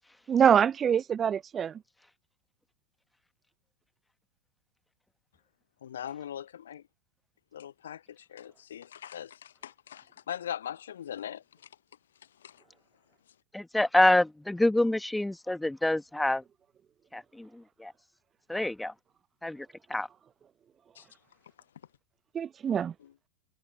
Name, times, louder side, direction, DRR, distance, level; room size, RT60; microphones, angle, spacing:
voice 1, 0.3-1.8 22.3-22.9, right 8 dB, 25° right, 0.8 m, -24 dB
voice 2, 5.8-6.8 7.5-11.4 12.4-12.6 21.0-21.1, left 10 dB, 65° left, 0.7 m, -40 dB
voice 3, 13.5-16.4 17.1-17.9 18.5-18.9 19.4-20.1, left 1 dB, 5° left, 1.9 m, -27 dB
figure-of-eight pair, 90°, 0 cm